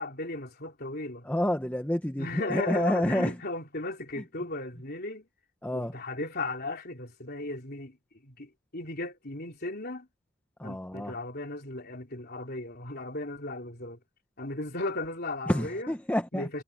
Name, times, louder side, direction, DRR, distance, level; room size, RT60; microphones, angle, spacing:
voice 1, 0.0-1.3 2.2-5.3 5.7-8.0 8.2-10.1 10.6-14.0 14.4-15.9 16.3-16.5, left 2 dB, 45° left, 3.7 m, -36 dB
voice 2, 1.2-3.4 4.2-4.3 5.6-6.0 10.6-11.2 15.5-16.5, equal, 5° left, 1.0 m, -29 dB
head